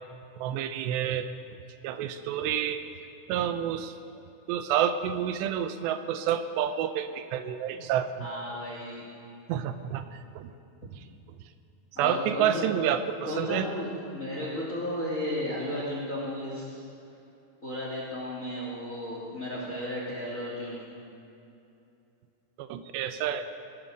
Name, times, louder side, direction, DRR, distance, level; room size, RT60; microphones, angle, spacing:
voice 1, 0.4-1.3 1.8-2.8 3.3-3.9 4.5-8.3 9.5-10.5 12.0-13.7 22.6-23.7, right 9 dB, 85° right, 10 dB, 2.9 m, -29 dB
voice 2, 8.2-9.0 11.9-12.6 13.3-16.8 17.6-20.8, left 1 dB, 25° left, -3 dB, 2.1 m, -34 dB
19.0 x 11.0 x 6.5 m, 2.7 s
omnidirectional pair, 5.0 m